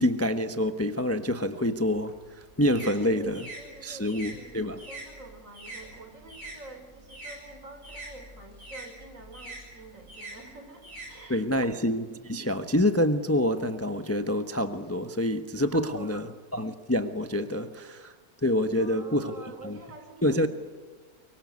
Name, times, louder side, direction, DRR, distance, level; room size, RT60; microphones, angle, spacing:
voice 1, 0.0-3.5 3.8-4.8 11.3-18.1 18.4-19.3 19.6-19.8 20.2-20.5, left 1 dB, 10° left, 9 dB, 1.0 m, -27 dB
sound 1, 1.8-6.6 6.9-11.7, right 2 dB, 75° right, 8.1 m, -44 dB
voice 2, 3.0-11.7 15.7-16.3 18.7-20.5, right 2 dB, 55° right, 6 dB, 4.0 m, -47 dB
24.0 x 23.5 x 9.6 m, 1.5 s
omnidirectional pair, 1.6 m